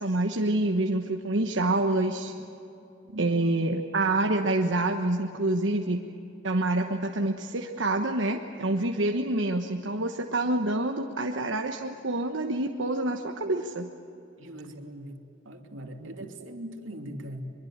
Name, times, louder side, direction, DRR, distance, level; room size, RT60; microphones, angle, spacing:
voice 1, 0.0-2.3 3.2-6.0 6.4-13.9 16.0-16.1, right 2 dB, 70° right, 3 dB, 1.3 m, -27 dB
voice 2, 3.1-3.4 14.4-15.2 15.4-17.4, right 1 dB, 85° right, 4 dB, 2.8 m, -40 dB
23.5 x 23.0 x 8.8 m, 2.9 s
head